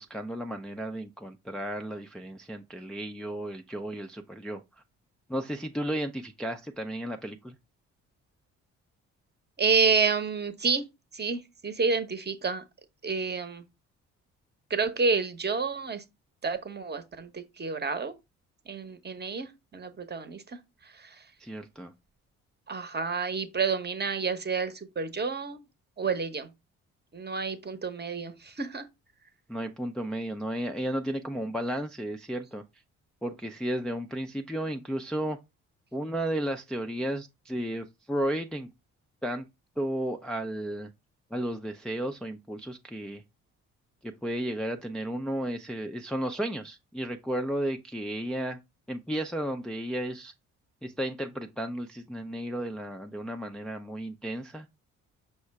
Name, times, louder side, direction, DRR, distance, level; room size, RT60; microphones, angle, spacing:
voice 1, 0.0-4.6 5.3-7.5 21.4-21.9 29.5-32.6 33.2-35.4 35.9-38.7 39.2-39.5 39.8-40.9 41.3-43.2 44.0-48.6 48.9-50.3 50.8-54.7, right 1 dB, ahead, 0.4 m, -33 dB
voice 2, 9.6-10.8 11.1-12.6 13.0-13.6 14.7-16.0 16.4-18.1 18.7-20.6 20.9-21.2 22.7-25.6 26.0-26.5 27.1-28.8, right 5 dB, 30° right, 0.9 m, -29 dB
5.4 x 2.1 x 4.6 m
hypercardioid pair, 50°, 36 cm